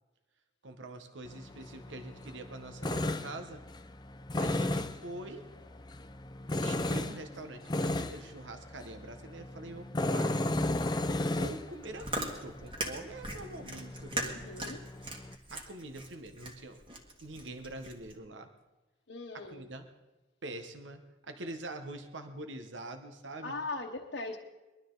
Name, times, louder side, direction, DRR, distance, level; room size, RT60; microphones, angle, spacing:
voice 1, 0.6-3.6 4.4-5.5 6.6-10.4 11.2-14.2 15.5-16.8 17.2-18.5 19.3-19.9 20.4-23.6, right 2 dB, 85° right, 7 dB, 1.2 m, -44 dB
Tools, 1.3-15.4, left 2 dB, 20° left, 0.5 m, -35 dB
Chewing mastication, 11.7-18.2, right 1 dB, 25° right, 1.7 m, -40 dB
voice 2, 14.1-14.8 19.1-19.6 23.4-24.4, left 2 dB, 75° left, -1 dB, 1.1 m, -39 dB
21.0 x 12.0 x 3.9 m, 1.1 s
head